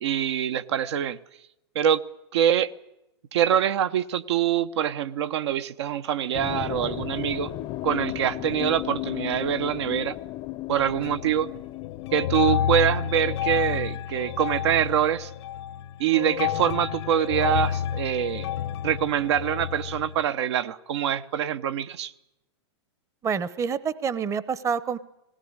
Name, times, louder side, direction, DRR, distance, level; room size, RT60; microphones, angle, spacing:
voice 1, 0.0-1.2 1.7-2.0 2.3-2.7 3.3-7.5 7.8-10.2 10.7-11.5 12.1-15.3 16.0-18.5 18.8-22.1, right 10 dB, 70° right, 1.1 m, -24 dB
sound 1, 6.3-13.9, left 16 dB, 35° left, 0.7 m, -35 dB
sound 2, 10.7-11.5 11.8-20.2, left 10 dB, 70° left, 1.0 m, -30 dB
voice 2, 23.2-25.0, right 6 dB, 20° right, 0.9 m, -27 dB
18.5 x 17.5 x 9.6 m
hypercardioid pair, 130°, 15 cm